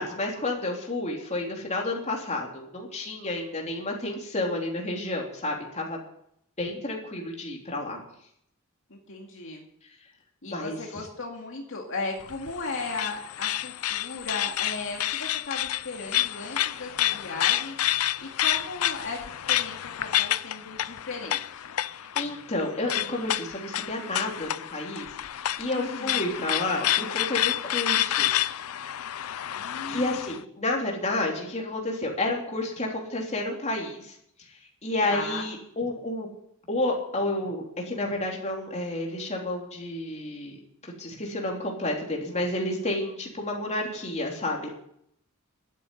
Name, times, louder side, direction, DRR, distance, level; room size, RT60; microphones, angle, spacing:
voice 1, 0.0-6.0 6.6-8.0 10.5-10.8 21.8-28.3 29.9-34.2 34.8-36.3 36.7-40.6 40.8-44.7, left 2 dB, 30° left, 0 dB, 3.4 m, -30 dB
voice 2, 8.9-9.7 10.4-17.8 18.2-21.7 25.7-26.3 29.6-30.2 35.1-35.5, left 3 dB, 65° left, 0 dB, 2.2 m, -36 dB
sound 1, 12.2-30.4, left 13 dB, 80° left, 0.5 m, -29 dB
12.0 x 9.3 x 9.9 m, 0.72 s
head